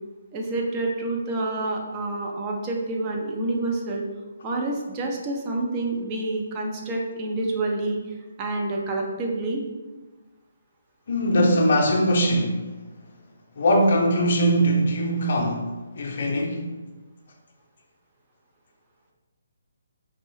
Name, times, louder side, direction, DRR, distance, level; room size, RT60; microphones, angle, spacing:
voice 1, 0.3-4.0 4.4-8.0 8.4-9.6, right 2 dB, 25° right, 0.6 m, -28 dB
voice 2, 11.1-12.6 13.6-16.7, equal, 50° left, 0.6 m, -21 dB
4.0 x 2.6 x 3.1 m
figure-of-eight pair, 140°, 0 cm